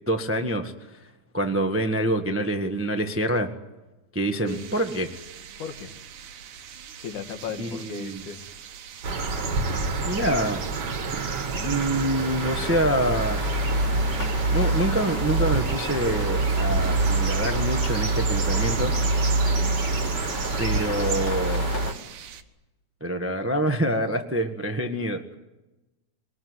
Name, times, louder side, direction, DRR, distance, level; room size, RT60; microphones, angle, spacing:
voice 1, 0.1-0.7 1.3-3.5 4.1-5.1 7.6-8.2 9.7-10.6 11.6-13.4 14.5-18.9 20.6-21.6 23.0-25.3, right 1 dB, 20° right, 6 dB, 0.3 m, -26 dB
Murmuration edit, 4.5-22.4, right 8 dB, 80° right, 2.8 m, -43 dB
voice 2, 5.6-5.9 7.0-8.5 19.5-19.7, left 7 dB, 85° left, 6 dB, 3.4 m, -36 dB
sound 1, 9.0-21.9, right 3 dB, 40° right, 1.9 m, -25 dB
sound 2, 12.2-21.9, left 4 dB, 50° left, 3.4 m, -37 dB
25.0 x 20.5 x 9.6 m, 1.0 s
omnidirectional pair, 3.4 m